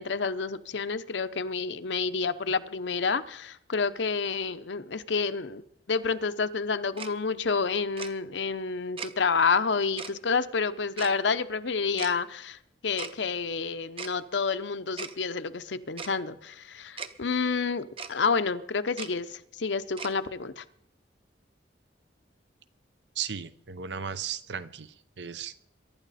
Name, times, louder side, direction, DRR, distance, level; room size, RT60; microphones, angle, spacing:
voice 1, 0.0-5.6 5.9-20.6, left 5 dB, 75° left, 12 dB, 0.8 m, -29 dB
Tick-tock, 7.0-7.1 8.0-8.1 9.0-9.1 10.0-10.1 11.0-11.1 12.0-12.1 13.0-13.1 14.0-14.1 15.0-15.1 16.0-16.1 17.0-17.1 18.0-18.1 19.0-19.1 20.0-20.1, right 5 dB, 30° right, 0.8 m, -37 dB
voice 2, 23.2-25.5, right 7 dB, 70° right, 14 dB, 0.7 m, -36 dB
23.0 x 11.5 x 4.2 m, 0.74 s
head